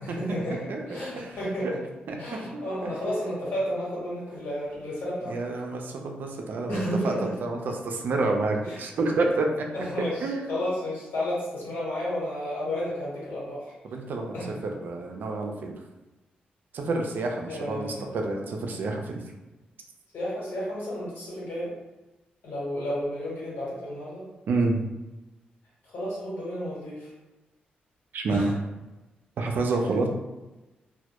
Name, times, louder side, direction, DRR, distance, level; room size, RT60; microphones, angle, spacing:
voice 1, 0.0-0.6 0.9-1.8 2.2-5.3 6.7-7.2 8.7-8.8 9.7-13.7 14.3-14.5 17.5-18.1 20.1-21.7 22.4-24.3 25.8-27.1 28.3-28.5, equal, 75° left, -6 dB, 1.2 m, -32 dB
voice 2, 0.7-1.3 1.6-1.7 2.1-2.2 2.5-2.6 5.3-9.7 10.0-10.5 13.8-14.3 14.6-15.7 16.7-19.2 24.5-24.8 28.1-28.5 29.4-30.1, right 3 dB, 70° right, 2 dB, 0.4 m, -28 dB
2.1 x 2.0 x 2.8 m, 1.1 s
cardioid pair, 90°, 3 cm